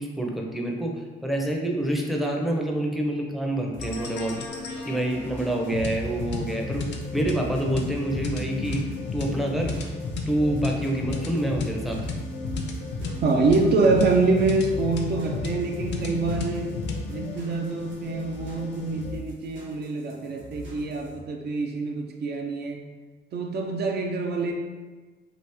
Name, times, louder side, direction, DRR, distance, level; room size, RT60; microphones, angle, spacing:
voice 1, 0.0-4.4 4.9-8.9 9.1-9.7 10.3-12.0, right 1 dB, ahead, 0 dB, 0.5 m, -27 dB
sound 1, 3.7-21.2, left 1 dB, 70° right, 0.8 m, -43 dB
sound 2, 3.8-19.2, left 3 dB, 60° left, 0.5 m, -33 dB
voice 2, 13.2-16.8 17.1-22.8 23.3-24.5, right 3 dB, 55° right, 2 dB, 0.4 m, -25 dB
3.0 x 2.5 x 3.3 m, 1.3 s
cardioid pair, 90°, 20 cm